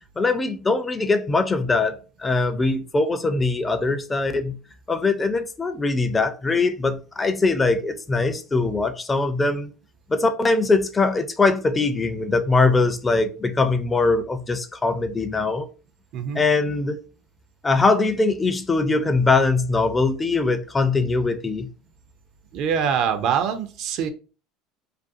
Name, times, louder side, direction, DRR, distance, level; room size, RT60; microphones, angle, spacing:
voice 1, 0.2-4.6 4.9-9.7 10.1-15.7 16.3-17.0 17.6-21.7, left 3 dB, 20° left, 0.4 m, -22 dB
voice 2, 22.5-24.1, right 7 dB, 60° right, 0.4 m, -24 dB
2.5 x 2.3 x 2.5 m
hypercardioid pair, 90°, 0 cm